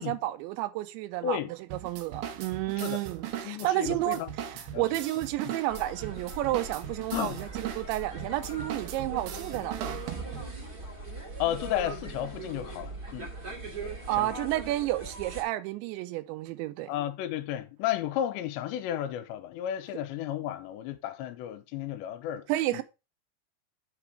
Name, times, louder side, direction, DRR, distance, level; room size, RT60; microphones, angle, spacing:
voice 1, 0.0-1.4 1.7-10.0 14.1-16.9 22.5-22.8, right 16 dB, 90° right, 3.0 m, -31 dB
sound 1, 1.7-10.6, right 10 dB, 70° right, 2.3 m, -39 dB
voice 2, 3.4-4.3 4.7-4.9 5.5-5.6 7.1-7.4 11.4-13.3 14.2-14.3 16.9-22.5 22.7-22.8, left 11 dB, 85° left, 2.9 m, -33 dB
sound 2, 5.7-15.4, right 2 dB, 30° right, 2.2 m, -41 dB
6.9 x 6.0 x 4.8 m
omnidirectional pair, 5.1 m